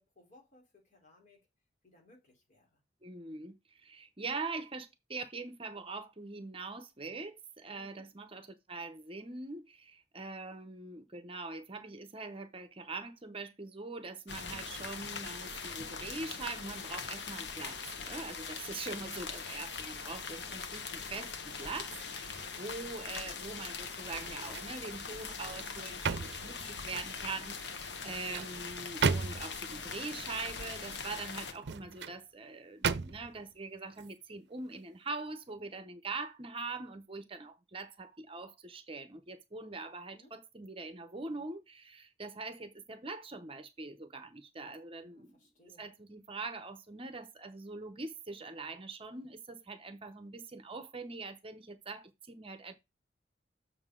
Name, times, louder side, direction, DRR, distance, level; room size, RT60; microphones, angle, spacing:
voice 1, 0.0-1.5 1.8-2.8 7.7-8.1 20.4-20.7 40.1-40.3 44.9-46.0, left 1 dB, 45° left, 3.6 m, -63 dB
voice 2, 3.0-45.4 45.8-52.7, right 3 dB, 30° right, 0.8 m, -43 dB
sound 1, 14.3-31.5, left 5 dB, 80° left, 1.1 m, -42 dB
sound 2, 24.0-24.8 25.2-27.2 27.9-29.7 31.4-32.2 32.8-33.4 33.9-34.1, right 5 dB, 70° right, 0.5 m, -35 dB
7.1 x 6.6 x 3.8 m
head